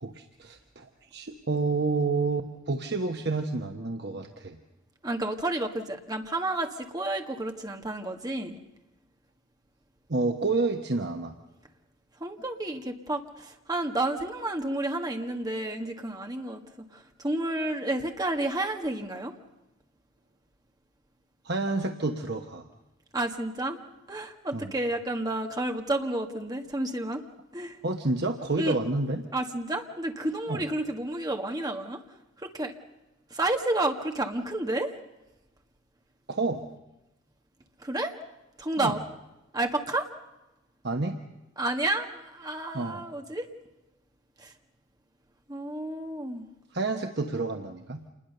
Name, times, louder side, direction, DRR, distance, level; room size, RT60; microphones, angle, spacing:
voice 1, 0.0-4.6 10.1-11.3 21.4-22.7 24.5-24.7 27.8-29.2 30.5-30.6 36.3-36.6 38.8-39.0 40.8-41.2 42.7-43.0 46.7-48.0, right 3 dB, 50° right, 4 dB, 1.1 m, -29 dB
voice 2, 5.0-8.6 12.2-16.6 16.9-19.3 23.1-23.8 24.1-27.2 27.5-27.8 28.6-28.8 29.3-32.0 32.4-32.7 33.3-34.9 37.8-38.1 38.6-39.0 39.5-40.1 41.6-43.5 44.4-44.5 45.5-46.4, right 2 dB, 20° right, 4 dB, 1.7 m, -30 dB
27.5 x 21.0 x 6.7 m, 0.99 s
head